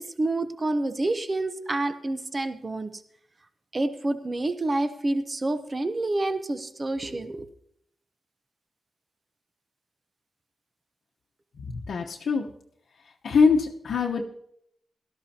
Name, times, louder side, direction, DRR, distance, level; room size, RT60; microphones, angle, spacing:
voice 1, 0.2-2.9 3.7-7.4, right 2 dB, 25° right, 10 dB, 0.8 m, -28 dB
voice 2, 11.7-12.5 13.2-14.3, left 5 dB, 70° left, 0 dB, 1.0 m, -23 dB
17.5 x 13.0 x 2.9 m, 0.70 s
wide cardioid pair, 155°, 0 cm